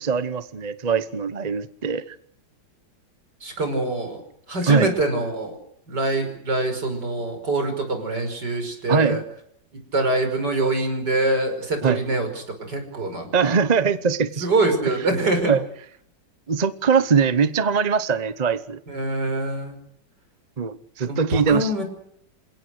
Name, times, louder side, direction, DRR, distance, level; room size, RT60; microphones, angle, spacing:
voice 1, 0.0-2.0 4.6-4.9 8.9-9.2 11.8-12.0 13.3-14.5 15.2-15.6 16.5-18.8 20.6-21.7, right 5 dB, 30° right, 0.7 m, -21 dB
voice 2, 3.4-4.2 4.5-5.6 5.9-9.2 9.9-13.5 14.4-15.5 18.9-19.8 21.1-21.8, right 2 dB, 65° right, 6.2 m, -24 dB
28.0 x 17.0 x 8.0 m
omnidirectional pair, 2.0 m